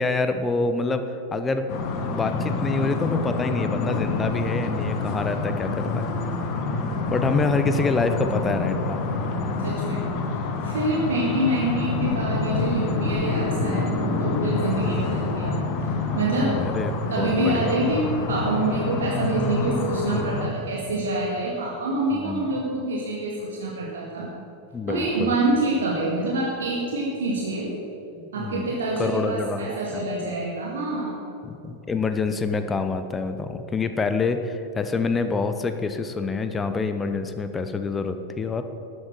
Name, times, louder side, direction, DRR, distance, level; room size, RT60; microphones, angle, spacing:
voice 1, 0.0-1.7 2.0-6.1 7.1-9.0 16.6-17.8 22.1-22.5 24.7-25.3 28.2-28.7 29.0-30.0 31.4-38.6, left 4 dB, 15° left, 9 dB, 0.9 m, -26 dB
sound 1, 1.7-20.5, left 3 dB, 40° left, 1.5 m, -27 dB
voice 2, 9.6-24.3 24.9-27.7 28.3-31.2, right 2 dB, 65° right, -3 dB, 2.0 m, -26 dB
13.0 x 8.8 x 7.7 m, 2.9 s
figure-of-eight pair, 90°, 0 cm